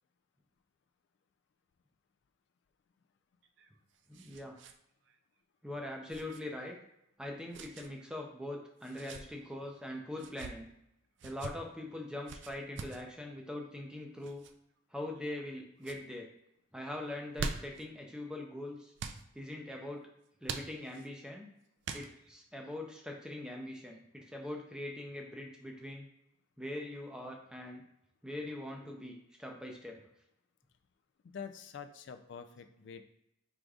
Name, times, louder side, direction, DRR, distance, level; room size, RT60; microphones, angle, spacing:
sound 1, 3.4-4.8 5.1-5.2 6.1-6.4 7.5-7.9 8.8-9.2 10.1-10.5 11.2-11.5 12.3-13.0 14.2-14.5 15.2-15.5 15.8-16.0 17.1-17.9 19.0-19.2 20.4-21.1 21.8-22.4, right 4 dB, 65° right, 0.4 m, -43 dB
voice 1, 4.1-4.6 5.6-6.8 7.2-10.7 11.2-14.4 14.9-16.3 16.7-18.9 19.3-20.1 20.4-21.5 21.9-26.1 26.6-27.8 28.2-30.0, left 1 dB, 5° right, 1 dB, 0.5 m, -42 dB
voice 2, 31.2-33.0, left 6 dB, 60° left, 8 dB, 0.3 m, -46 dB
4.8 x 3.7 x 2.4 m, 0.80 s
head